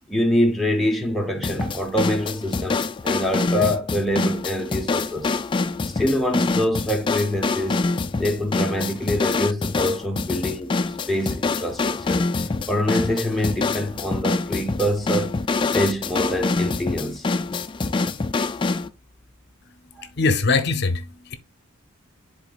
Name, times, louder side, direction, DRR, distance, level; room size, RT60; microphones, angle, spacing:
voice 1, 0.1-5.3 5.9-7.8 8.2-12.2 12.7-15.4 15.7-17.3 20.0-20.1, left 1 dB, ahead, 0.8 m, -25 dB
sound 1, 1.4-18.9, left 3 dB, 25° left, 0.3 m, -25 dB
voice 2, 20.2-21.3, left 3 dB, 50° left, 0.7 m, -22 dB
10.5 x 3.9 x 2.4 m
head